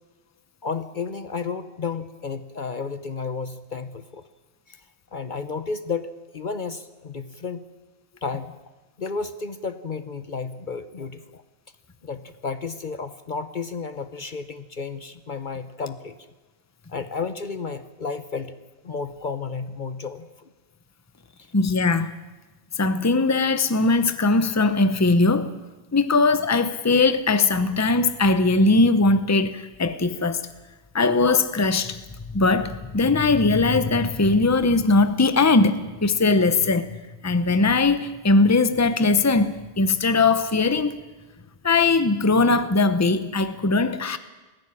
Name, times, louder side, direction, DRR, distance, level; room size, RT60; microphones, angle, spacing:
voice 1, 0.6-4.2 4.7-4.8 5.1-7.6 8.2-8.6 9.0-11.4 12.0-16.3 16.9-18.5 18.8-20.5 21.4-21.5, left 4 dB, 50° left, 1.0 m, -32 dB
voice 2, 21.5-22.1 22.8-25.6 25.9-30.4 30.9-32.0 32.3-36.9 37.2-40.9 41.6-44.2, left 3 dB, 15° left, 0.9 m, -20 dB
19.5 x 15.5 x 9.9 m
omnidirectional pair, 1.1 m